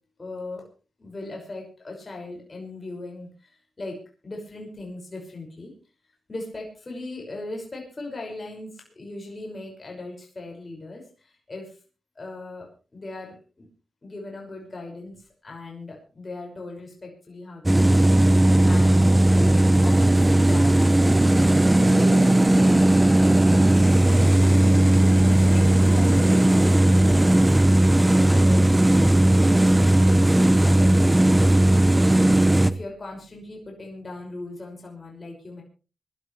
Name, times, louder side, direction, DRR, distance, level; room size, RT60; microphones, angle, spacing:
voice 1, 0.2-0.6 1.0-5.7 6.3-11.8 12.2-13.7 14.0-21.5 21.9-24.9 25.4-27.3 28.0-31.4 31.9-35.6, left 2 dB, 35° left, 0 dB, 6.0 m, -39 dB
sound 1, 17.7-32.7, right 1 dB, 15° right, 0.9 m, -17 dB
25.5 x 13.0 x 3.3 m, 0.35 s
cardioid pair, 65°, 0 cm